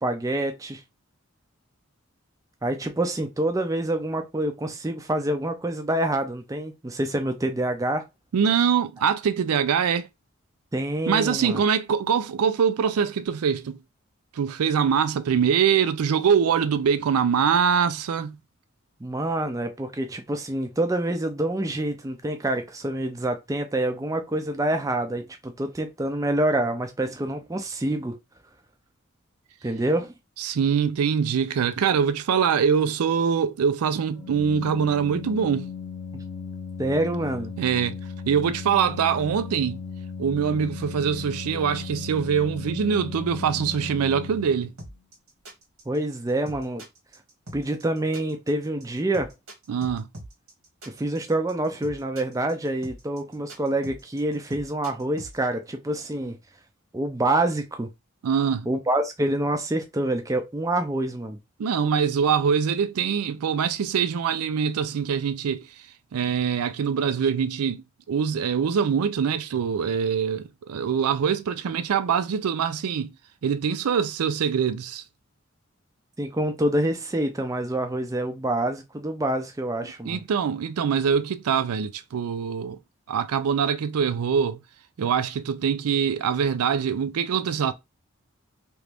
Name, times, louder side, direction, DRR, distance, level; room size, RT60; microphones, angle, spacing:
voice 1, 0.0-0.8 2.6-8.1 10.7-11.6 19.0-28.1 29.6-30.1 36.1-36.2 36.8-37.5 45.9-46.8 47.5-49.3 50.9-56.4 56.9-57.9 58.7-61.4 76.2-80.2, right 1 dB, 15° right, 0.4 m, -27 dB
voice 2, 8.3-10.1 11.1-13.8 14.3-18.4 30.4-35.7 37.6-38.0 38.3-39.8 40.2-44.7 49.7-50.1 58.2-58.7 61.6-65.7 66.1-73.1 73.4-75.0 80.1-82.8 83.1-84.6 85.0-87.7, right 7 dB, 90° right, 0.4 m, -23 dB
Organ, 34.1-44.9, left 5 dB, 45° left, 0.7 m, -37 dB
sound 1, 44.8-55.4, right 1 dB, 70° right, 1.2 m, -42 dB
3.0 x 2.5 x 3.3 m
head